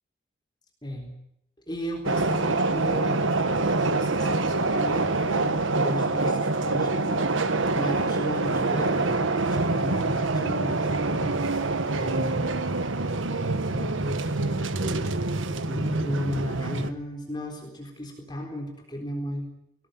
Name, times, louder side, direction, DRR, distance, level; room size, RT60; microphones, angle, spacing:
voice 1, 0.8-1.1 1.7-12.5 13.7-15.2 15.7-19.5, equal, 20° left, 2 dB, 3.8 m, -35 dB
sound 1, 2.1-16.9, right 3 dB, 85° right, 1.4 m, -25 dB
21.0 x 17.5 x 9.3 m, 0.79 s
head